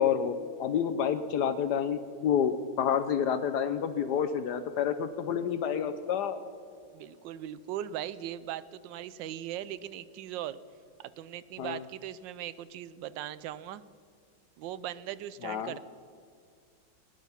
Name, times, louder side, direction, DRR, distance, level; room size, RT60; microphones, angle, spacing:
voice 1, 0.0-6.4 11.6-11.8 15.4-15.7, left 8 dB, 70° left, 10 dB, 1.2 m, -29 dB
voice 2, 6.9-10.6 11.0-13.8 14.6-15.8, right 11 dB, 85° right, 16 dB, 1.3 m, -39 dB
18.0 x 10.0 x 5.7 m, 2.2 s
omnidirectional pair, 2.0 m